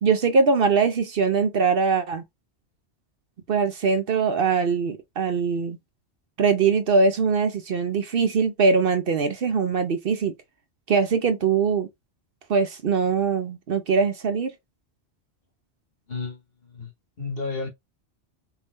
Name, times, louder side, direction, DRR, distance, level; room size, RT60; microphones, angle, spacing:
voice 1, 0.0-2.2 3.5-5.8 6.4-10.3 10.9-11.9 12.5-14.5, right 5 dB, 60° right, 0.8 m, -22 dB
voice 2, 16.1-16.9 17.2-17.7, left 4 dB, 55° left, 2.0 m, -32 dB
4.4 x 3.5 x 2.6 m
omnidirectional pair, 1.2 m